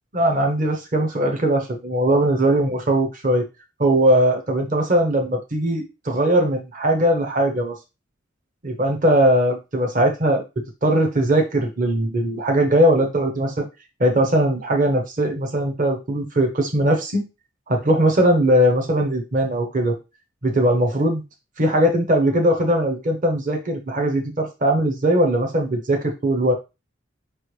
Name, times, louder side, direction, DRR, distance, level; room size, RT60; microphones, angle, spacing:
voice 1, 0.1-3.4 3.8-7.7 8.6-10.4 10.8-13.7 14.0-17.3 17.7-20.0 20.4-21.2 21.6-26.5, right 1 dB, 40° right, 3 dB, 0.9 m, -20 dB
5.2 x 3.3 x 3.1 m, 0.27 s
head